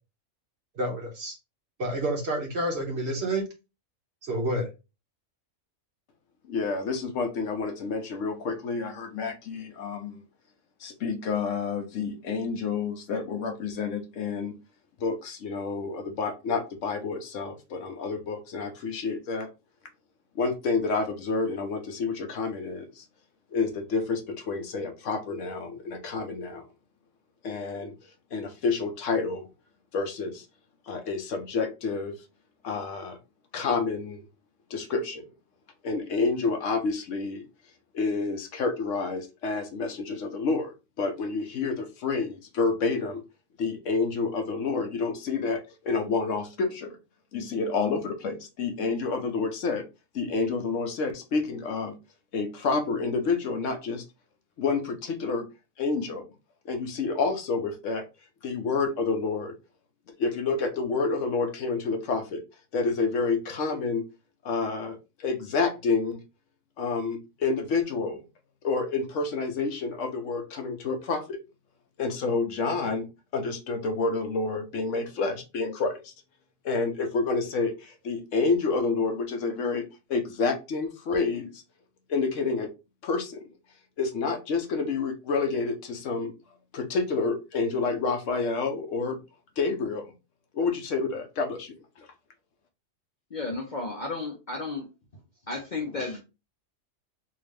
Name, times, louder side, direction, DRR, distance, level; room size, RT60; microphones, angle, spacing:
voice 1, 0.7-1.4 1.8-3.4 4.2-4.7, right 1 dB, 55° right, 1 dB, 1.2 m, -29 dB
voice 2, 6.5-10.2 10.8-14.6 15.0-19.5 20.3-23.0 23.5-26.6 27.4-27.9 28.3-29.5 29.9-30.4 30.9-32.2 32.6-33.2 33.5-34.2 34.7-35.2 35.8-37.5 37.9-43.2 43.6-47.0 47.3-49.8 50.1-52.0 52.3-54.0 54.6-55.5 55.8-56.2 56.6-58.1 58.4-59.6 60.2-62.4 62.7-64.0 64.4-66.2 66.8-68.2 68.6-71.4 72.0-73.1 73.3-76.1 76.6-79.8 80.1-81.6 82.1-82.7 83.0-83.4 84.0-86.3 86.7-89.2 89.6-90.1 90.5-92.1, left 4 dB, 70° left, 5 dB, 1.0 m, -29 dB
voice 3, 93.3-94.9 95.5-96.2, left 3 dB, 45° left, 1 dB, 0.6 m, -33 dB
3.6 x 2.5 x 3.3 m, 0.28 s
omnidirectional pair, 1.4 m